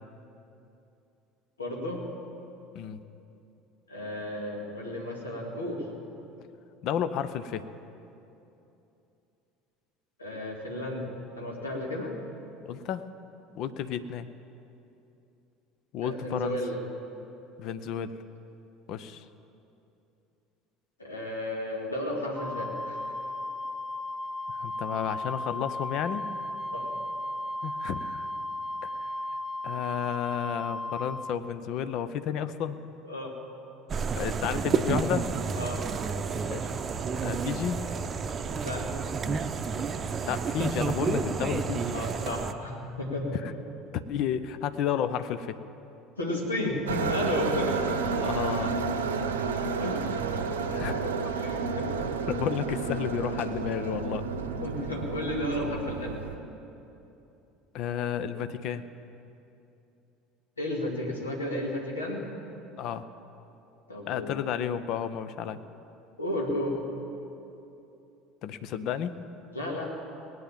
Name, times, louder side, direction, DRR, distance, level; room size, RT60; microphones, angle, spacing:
voice 1, 1.6-2.0 3.9-5.8 10.2-11.1 11.3-12.1 16.0-16.8 21.0-23.1 26.7-26.9 33.0-33.3 35.5-35.8 38.6-38.8 41.9-43.4 46.2-47.9 49.8-50.2 51.0-52.1 54.6-56.2 60.6-62.2 63.9-64.3 66.2-66.8 69.5-69.9, left 1 dB, 80° left, -1 dB, 2.1 m, -33 dB
voice 2, 6.8-7.7 12.6-13.0 13.5-14.3 15.9-16.6 17.6-18.2 18.9-19.2 24.5-26.3 27.6-28.3 28.8-29.1 29.6-32.8 34.1-35.3 36.5-36.7 37.2-37.9 40.2-42.0 44.1-45.6 48.2-48.8 50.7-51.0 52.3-54.2 57.7-58.8 62.8-63.0 64.1-65.6 68.4-69.2, left 9 dB, 50° left, 12 dB, 0.7 m, -32 dB
Wind instrument woodwind instrument, 22.4-31.3, left 1 dB, 15° left, 1.1 m, -35 dB
sound 1, 33.9-42.5, right 5 dB, 30° right, 0.7 m, -30 dB
sound 2, 46.9-56.4, right 5 dB, 75° right, 0.8 m, -31 dB
18.5 x 9.4 x 7.3 m, 2.8 s
figure-of-eight pair, 65°, 0 cm